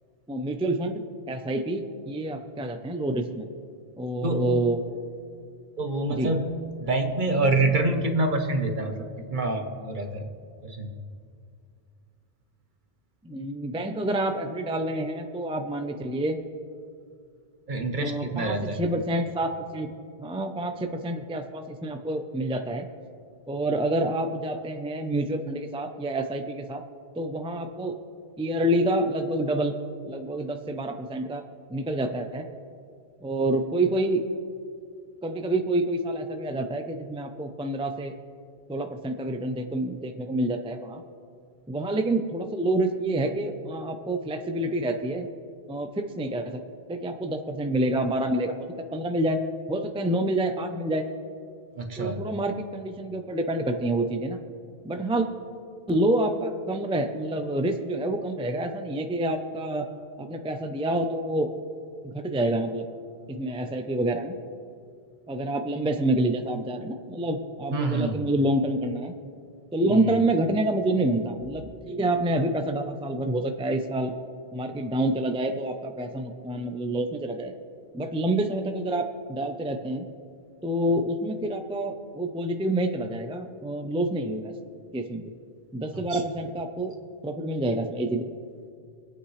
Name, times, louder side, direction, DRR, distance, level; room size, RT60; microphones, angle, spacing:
voice 1, 0.3-3.5 4.0-5.0 6.1-6.3 13.2-16.4 18.0-19.9 20.2-22.9 23.5-26.8 27.2-28.0 28.4-29.7 30.1-31.4 31.7-32.5 33.2-34.2 35.2-38.1 38.7-41.0 41.7-45.3 45.7-46.6 46.9-48.5 48.9-49.4 49.7-51.1 52.0-54.4 54.8-55.3 55.9-59.8 60.2-61.5 62.0-62.8 63.4-64.4 65.3-69.2 69.7-74.1 74.5-77.5 77.9-80.1 80.6-84.5 84.9-85.2 85.7-86.9 87.2-88.3, right 1 dB, 5° right, 6 dB, 0.5 m, -27 dB
voice 2, 4.2-4.6 5.8-10.3 10.6-10.9 17.7-18.8 51.8-52.2 67.7-68.2 69.9-70.2 86.1-86.2, right 2 dB, 50° right, 5 dB, 1.2 m, -27 dB
23.5 x 8.8 x 3.2 m, 2.4 s
omnidirectional pair, 1.0 m